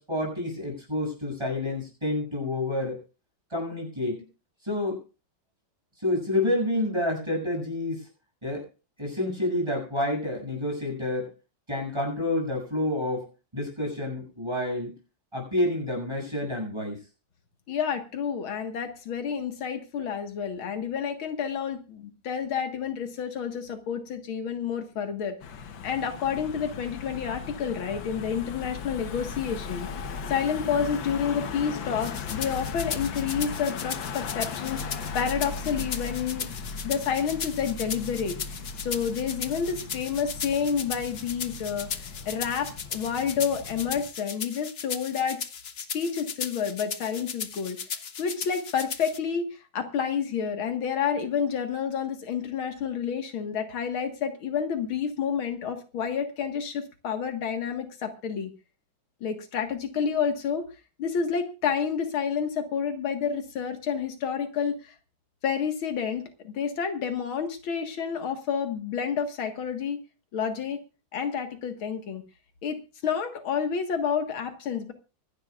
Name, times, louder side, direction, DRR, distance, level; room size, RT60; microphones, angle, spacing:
voice 1, 0.0-3.0 3.5-4.2 4.6-5.0 6.0-8.1 8.4-8.7 9.0-11.3 11.7-13.3 13.5-14.9 15.3-17.0, left 1 dB, 15° right, 1 dB, 7.5 m, -28 dB
voice 2, 17.7-25.3 25.8-29.9 30.3-36.5 36.8-45.4 45.8-47.8 48.2-58.5 59.2-60.7 61.0-64.9 65.4-70.0 70.3-70.8 71.1-72.2 72.6-74.9, left 7 dB, 90° left, 6 dB, 2.5 m, -29 dB
Car passing by / Engine, 25.4-44.1, left 5 dB, 70° left, 1.9 m, -37 dB
sound 1, 32.0-49.2, left 7 dB, 45° left, 0.8 m, -37 dB
24.5 x 11.5 x 2.5 m, 0.31 s
omnidirectional pair, 2.2 m